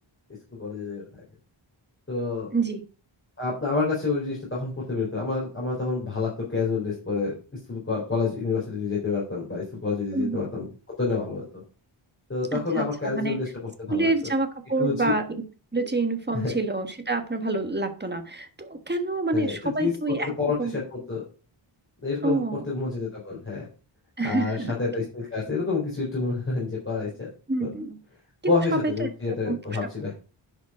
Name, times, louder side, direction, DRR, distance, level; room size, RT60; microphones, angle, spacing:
voice 1, 0.5-1.1 2.1-2.5 3.4-7.4 7.7-10.7 11.0-11.6 12.3-14.1 14.8-15.1 15.8-15.9 16.3-16.5 19.3-21.2 22.0-23.7 24.2-27.3 27.6-27.7 28.5-30.1, left 4 dB, 25° left, -5 dB, 3.9 m, -28 dB
voice 2, 12.5-13.4 13.9-15.2 15.7-20.3 20.6-20.8 22.2-22.6 24.2-24.7 27.5-28.0 28.4-29.1 29.5-29.6, right 2 dB, 20° right, 7 dB, 1.4 m, -27 dB
10.5 x 5.3 x 4.9 m, 0.37 s
wide cardioid pair, 105°, 50 cm